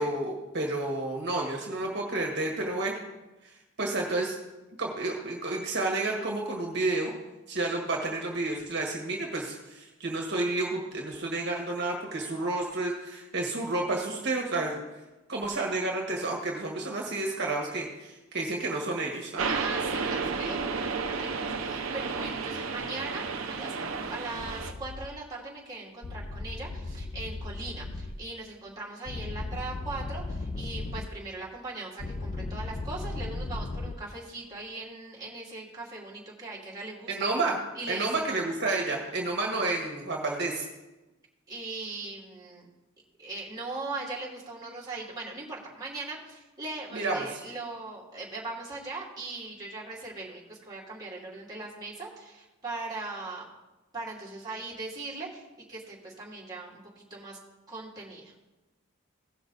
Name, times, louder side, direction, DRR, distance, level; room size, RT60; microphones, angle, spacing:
voice 1, 0.0-3.0 3.8-4.4 4.8-7.1 7.5-14.8 15.3-19.4 37.1-37.6 37.9-40.7 46.9-47.2, right 2 dB, 55° right, 0 dB, 1.6 m, -30 dB
sound 1, 19.4-24.7, right 4 dB, 90° right, 0.8 m, -32 dB
voice 2, 19.5-23.8 24.0-37.3 37.7-38.3 41.5-42.7 43.2-53.5 53.9-55.4 55.7-57.4 57.7-58.3, right 3 dB, 20° right, -6 dB, 2.4 m, -39 dB
sound 2, 24.4-25.1 26.0-28.2 29.1-31.1 32.0-33.9, left 2 dB, 35° left, 0.6 m, -36 dB
17.0 x 6.1 x 4.0 m, 1.1 s
head